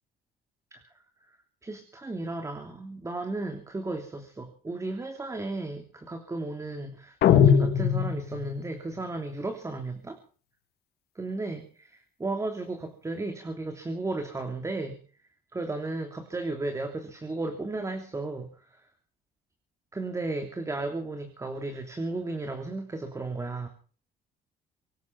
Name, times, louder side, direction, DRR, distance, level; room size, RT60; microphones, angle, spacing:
voice 1, 1.6-10.2 11.1-15.0 15.5-18.8 19.9-23.7, right 2 dB, 20° right, 5 dB, 3.2 m, -34 dB
sound 1, 7.2-8.7, left 8 dB, 70° left, 2.3 m, -21 dB
25.0 x 9.5 x 6.0 m, 0.42 s
cardioid pair, 110°, 17 cm